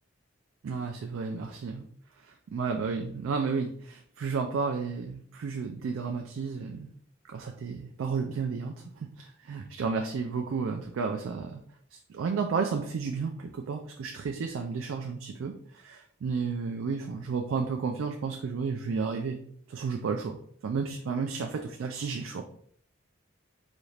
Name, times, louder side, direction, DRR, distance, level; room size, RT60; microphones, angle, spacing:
voice 1, 0.6-1.9 2.2-6.9 7.3-11.6 11.9-19.4 19.7-20.4 20.6-22.4, right 5 dB, 75° right, 4 dB, 0.3 m, -32 dB
4.0 x 2.4 x 3.2 m, 0.62 s
head